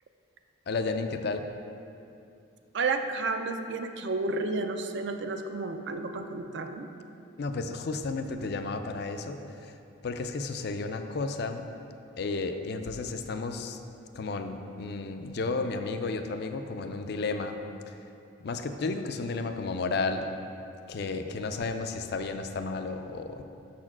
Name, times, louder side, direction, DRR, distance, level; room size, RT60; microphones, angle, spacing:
voice 1, 0.7-1.4 7.4-9.7 10.0-11.7 12.2-13.8 14.1-17.6 17.9-18.0 18.4-20.3 20.9-23.4, left 3 dB, 50° left, 7 dB, 0.4 m, -32 dB
voice 2, 2.7-6.9, right 3 dB, 55° right, 6 dB, 0.4 m, -31 dB
6.4 x 4.3 x 6.0 m, 2.7 s
head